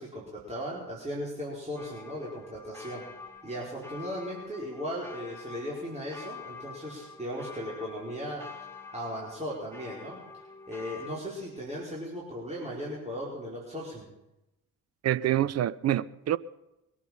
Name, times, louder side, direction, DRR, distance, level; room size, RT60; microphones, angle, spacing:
voice 1, 0.0-3.0 3.4-8.4 8.9-10.2 10.7-14.1, equal, 15° right, 4.8 m, -37 dB
sound 1, 1.8-11.2, left 4 dB, 5° left, 2.5 m, -46 dB
voice 2, 15.0-16.4, right 12 dB, 35° right, 0.6 m, -26 dB
22.5 x 8.4 x 5.6 m
figure-of-eight pair, 45°, 44 cm